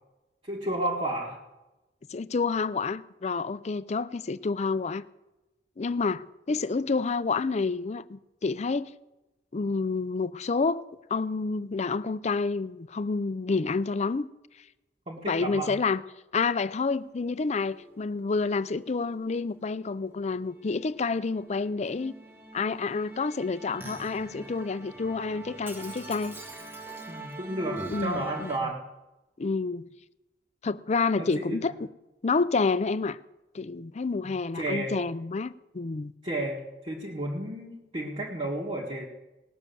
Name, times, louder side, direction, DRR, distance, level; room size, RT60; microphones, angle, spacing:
voice 1, 0.4-1.4 15.1-15.7 27.1-28.8 31.2-31.7 34.5-35.0 36.2-39.1, right 1 dB, 35° right, 1.9 m, -32 dB
voice 2, 2.1-5.0 5.8-8.9 9.5-14.3 15.3-16.0 16.3-22.2 22.5-26.4 27.9-28.7 29.4-29.9 30.6-31.7 32.2-33.2 33.5-36.1, left 4 dB, 40° left, 0.5 m, -29 dB
Musical instrument, 17.4-28.6, right 2 dB, 15° right, 1.4 m, -44 dB
18.5 x 7.2 x 7.0 m
head